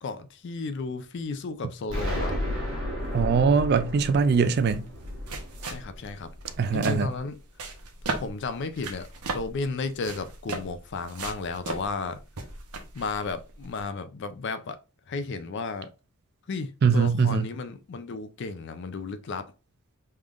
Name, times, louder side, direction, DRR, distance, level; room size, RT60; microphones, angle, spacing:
voice 1, 0.0-2.4 5.6-6.3 6.7-7.4 8.2-9.1 9.3-12.2 12.9-14.8 15.1-15.9 16.5-19.5, left 4 dB, 50° left, 0.4 m, -33 dB
Explosion, 1.9-6.7, equal, 60° right, 1.5 m, -33 dB
sound 1, 3.0-13.9, right 2 dB, 85° right, 0.8 m, -38 dB
voice 2, 3.1-4.9 6.6-7.1 16.8-17.5, right 5 dB, 45° right, 0.3 m, -22 dB
3.6 x 3.2 x 2.4 m
head